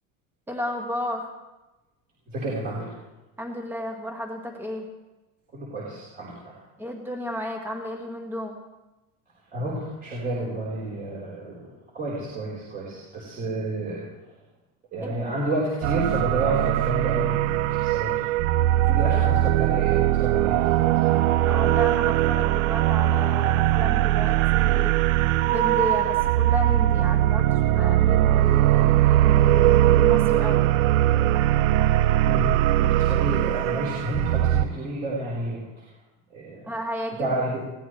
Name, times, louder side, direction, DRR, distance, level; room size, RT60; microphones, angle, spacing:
voice 1, 0.5-1.3 3.4-4.9 6.8-8.6 15.0-15.3 18.7-19.2 21.5-24.9 25.5-30.6 36.7-37.3, left 1 dB, 5° right, 1 dB, 1.8 m, -33 dB
voice 2, 2.3-3.0 5.5-6.5 9.5-14.0 14.9-18.1 18.8-21.0 32.2-32.5 32.8-35.9 36.3-36.8 37.2-37.6, right 1 dB, 25° right, -6 dB, 4.1 m, -30 dB
sound 1, 15.8-34.6, right 14 dB, 80° right, 0.6 m, -20 dB
21.0 x 17.0 x 3.3 m, 1.1 s
cardioid pair, 175°, 38 cm